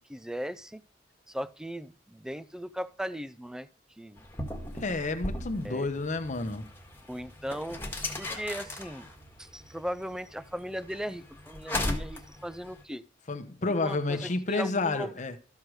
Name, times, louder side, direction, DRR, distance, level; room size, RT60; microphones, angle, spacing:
voice 1, 0.1-0.8 1.3-3.7 4.0-4.3 5.6-5.9 7.1-7.8 8.2-9.1 9.4-13.0 13.7-15.1, equal, 5° right, 0.4 m, -37 dB
sound 1, 4.2-12.8, left 1 dB, 10° left, 1.6 m, -38 dB
voice 2, 4.8-6.7 13.3-15.4, left 3 dB, 40° left, 0.9 m, -30 dB
13.0 x 4.8 x 6.3 m
head